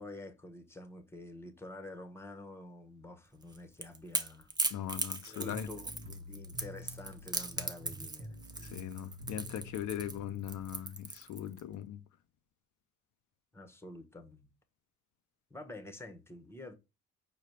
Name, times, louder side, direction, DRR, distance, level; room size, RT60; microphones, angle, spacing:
voice 1, 0.0-4.7 5.1-8.8 13.5-14.5 15.5-16.7, left 2 dB, 10° left, 0.9 m, -48 dB
Crackle / Crack, 3.4-11.6, right 3 dB, 15° right, 0.6 m, -38 dB
voice 2, 4.7-5.7 8.6-12.0, left 11 dB, 75° left, 0.5 m, -40 dB
sound 1, 5.5-10.8, left 1 dB, 60° right, 1.2 m, -48 dB
5.0 x 2.3 x 4.4 m
cardioid pair, 90°, 30 cm